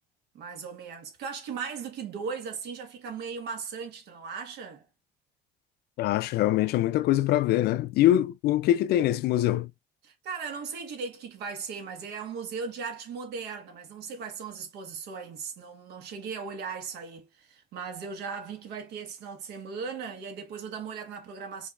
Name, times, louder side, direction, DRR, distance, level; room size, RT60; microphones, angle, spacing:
voice 1, 0.3-4.8 10.0-21.7, right 5 dB, 80° right, 1.4 m, -38 dB
voice 2, 6.0-9.7, left 13 dB, 70° left, 0.4 m, -23 dB
5.3 x 2.7 x 2.4 m
cardioid pair, 110°, 17 cm